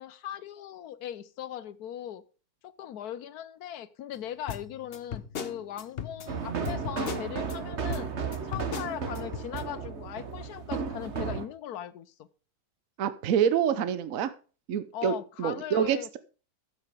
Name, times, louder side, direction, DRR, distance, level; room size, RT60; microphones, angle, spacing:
voice 1, 0.0-2.2 2.6-8.1 8.4-12.3 14.9-16.2, left 10 dB, 85° left, 14 dB, 1.3 m, -39 dB
sound 1, 4.5-7.6 7.9-9.6, left 7 dB, 45° left, 1.0 m, -38 dB
sound 2, 6.3-11.5, right 5 dB, 50° right, 1.5 m, -34 dB
voice 2, 13.0-14.3 14.7-16.2, right 8 dB, 65° right, 13 dB, 1.2 m, -27 dB
12.0 x 7.9 x 5.0 m, 0.37 s
omnidirectional pair, 1.6 m